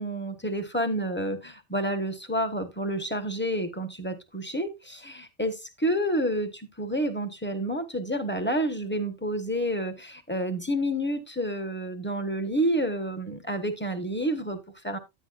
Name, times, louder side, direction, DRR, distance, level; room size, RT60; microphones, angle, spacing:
voice 1, 0.0-15.0, right 1 dB, 10° left, 1.0 m, -29 dB
10.5 x 9.4 x 2.4 m
omnidirectional pair, 1.2 m